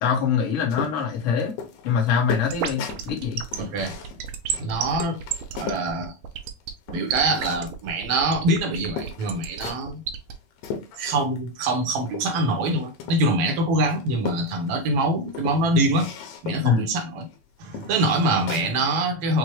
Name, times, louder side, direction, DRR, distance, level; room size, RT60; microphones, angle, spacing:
voice 1, 0.0-1.6 1.8-3.4 16.6-16.8, left 6 dB, 60° left, 1.6 m, -23 dB
sound 1, 0.7-5.9 6.3-7.8 8.5-8.6 9.0-9.9 10.3-11.5 11.7-13.5 13.8-14.9 15.3-16.8 17.2-17.4 17.7-18.7, left 6 dB, 90° left, 2.4 m, -36 dB
sound 2, 2.3-10.3, right 8 dB, 85° right, 2.2 m, -30 dB
voice 2, 3.6-4.0 4.6-5.2 5.5-6.1 6.9-10.0 11.0-16.1 16.4-17.3 17.6-19.4, right 1 dB, 70° right, 1.5 m, -24 dB
6.1 x 2.2 x 3.0 m
omnidirectional pair, 3.7 m